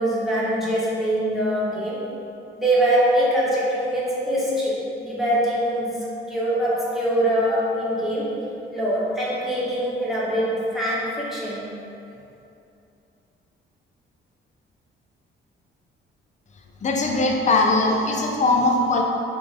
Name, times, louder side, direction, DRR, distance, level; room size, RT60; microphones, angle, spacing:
voice 1, 0.0-2.0 2.6-5.9 6.3-8.3 8.7-11.7, right 1 dB, ahead, -9 dB, 1.2 m, -23 dB
voice 2, 16.8-19.0, left 2 dB, 35° left, 1 dB, 0.5 m, -20 dB
5.1 x 2.5 x 3.4 m, 2.7 s
cardioid pair, 100°, 21 cm